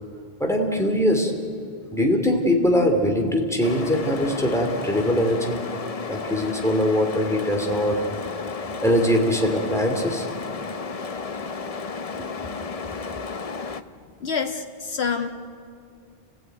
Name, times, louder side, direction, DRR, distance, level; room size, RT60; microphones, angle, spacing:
voice 1, 0.4-1.3 1.9-5.6 6.1-8.1 8.8-10.3 12.2-12.3, equal, 5° left, 1 dB, 3.0 m, -22 dB
sound 1, 3.6-13.8, left 4 dB, 40° left, 0.8 m, -33 dB
voice 2, 14.2-15.3, left 6 dB, 90° left, 4 dB, 1.8 m, -27 dB
29.5 x 16.5 x 9.3 m, 2.4 s
omnidirectional pair, 1.0 m